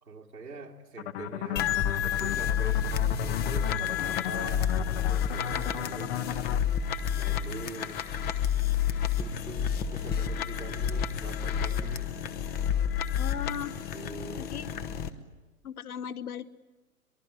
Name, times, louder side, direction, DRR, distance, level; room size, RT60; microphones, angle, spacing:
voice 1, 0.0-2.9 3.2-6.5 7.1-8.0 9.2-12.1 13.9-14.5, right 4 dB, 85° right, -1 dB, 2.7 m, -44 dB
sound 1, 1.0-6.6, left 11 dB, 50° left, 1.2 m, -35 dB
sound 2, 1.6-15.1, left 8 dB, 20° left, 1.0 m, -30 dB
voice 2, 13.2-13.8 14.4-14.7 15.6-16.5, left 9 dB, 75° left, 16 dB, 1.2 m, -37 dB
23.5 x 22.5 x 8.1 m, 1.2 s
figure-of-eight pair, 115°, 44 cm